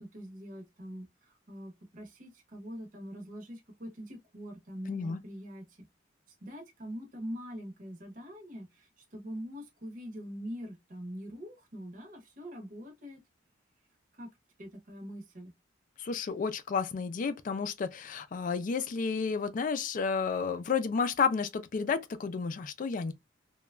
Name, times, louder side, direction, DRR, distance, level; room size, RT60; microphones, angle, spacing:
voice 1, 0.0-5.8 6.4-13.2 14.1-14.3 14.6-15.5, equal, 45° right, 0.8 m, -43 dB
voice 2, 4.9-5.2 16.0-23.1, left 5 dB, 40° left, 0.3 m, -31 dB
3.0 x 2.2 x 2.2 m
head